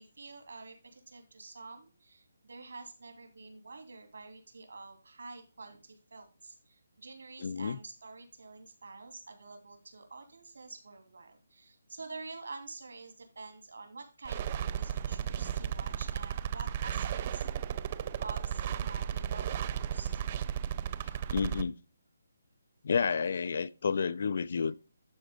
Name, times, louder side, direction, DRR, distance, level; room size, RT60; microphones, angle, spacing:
voice 1, 0.0-17.5 18.2-20.3, right 3 dB, 75° right, 2.8 m, -48 dB
voice 2, 7.4-7.8 21.3-21.8 22.8-24.7, left 5 dB, 40° left, 0.4 m, -30 dB
sound 1, 14.3-21.6, right 10 dB, 20° right, 0.3 m, -34 dB
11.5 x 4.6 x 3.7 m
hypercardioid pair, 175°, 0 cm